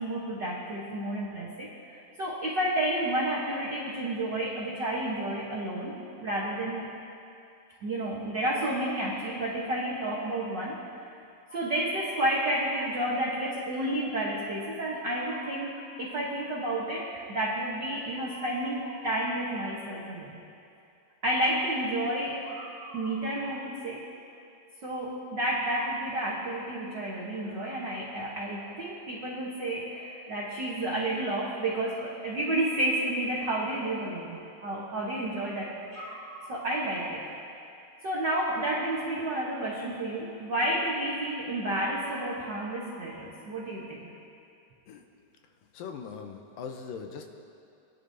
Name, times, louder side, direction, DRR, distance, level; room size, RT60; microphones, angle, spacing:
voice 1, 0.0-6.9 7.8-11.1 11.5-20.4 21.2-24.0 24.8-37.3 38.0-44.1, right 1 dB, 85° right, -5 dB, 0.9 m, -31 dB
voice 2, 45.7-47.3, left 6 dB, 80° left, 4 dB, 2.4 m, -40 dB
23.5 x 11.0 x 2.8 m, 2.6 s
omnidirectional pair, 4.1 m